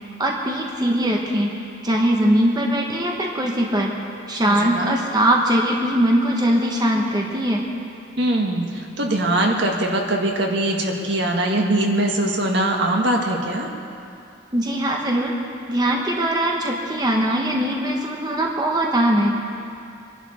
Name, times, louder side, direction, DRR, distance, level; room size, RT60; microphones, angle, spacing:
voice 1, 0.2-1.5 1.8-3.9 4.3-7.6 14.5-15.4 15.7-19.4, right 1 dB, 20° right, -1 dB, 1.2 m, -21 dB
voice 2, 4.4-5.0 8.2-13.7, right 1 dB, 65° right, 1 dB, 1.8 m, -22 dB
24.5 x 11.0 x 4.3 m, 2.5 s
head